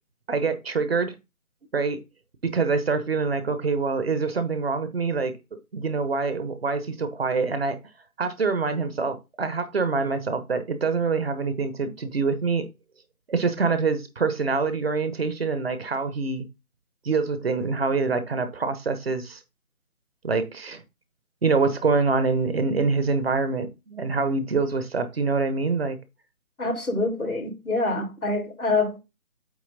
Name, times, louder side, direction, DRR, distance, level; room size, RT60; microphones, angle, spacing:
voice 1, 0.3-1.1 1.7-2.0 2.4-5.3 5.7-7.8 8.2-12.7 13.3-16.5 17.0-19.4 20.2-20.8 21.4-26.0, right 4 dB, 45° right, 1.2 m, -25 dB
voice 2, 26.6-29.0, left 3 dB, 85° left, 3.4 m, -26 dB
8.4 x 3.2 x 5.2 m
figure-of-eight pair, 155°, 42 cm